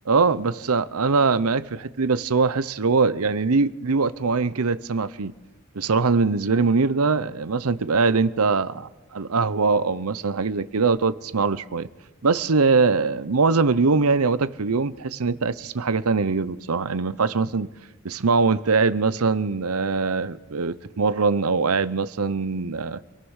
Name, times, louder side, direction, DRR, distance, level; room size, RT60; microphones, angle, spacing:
voice 1, 0.1-5.3 5.7-11.9 12.2-17.7 18.0-23.0, right 4 dB, 75° right, 0.8 m, -22 dB
27.5 x 19.0 x 6.4 m
head